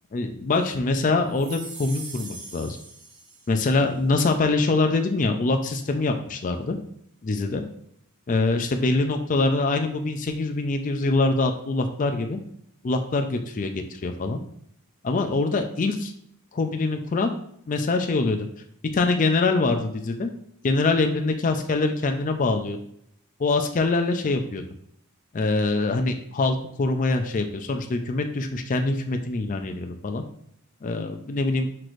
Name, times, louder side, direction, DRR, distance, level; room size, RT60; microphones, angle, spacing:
voice 1, 0.1-2.8 3.5-6.8 7.2-7.6 8.3-12.4 12.8-14.4 15.0-16.1 16.5-17.3 17.7-18.5 18.9-20.3 20.6-22.8 23.4-24.6 25.3-30.2 30.8-31.7, left 3 dB, 35° left, 5 dB, 0.4 m, -24 dB
sound 1, 1.3-3.8, right 3 dB, 55° right, 1.0 m, -41 dB
5.9 x 3.1 x 2.5 m, 0.69 s
head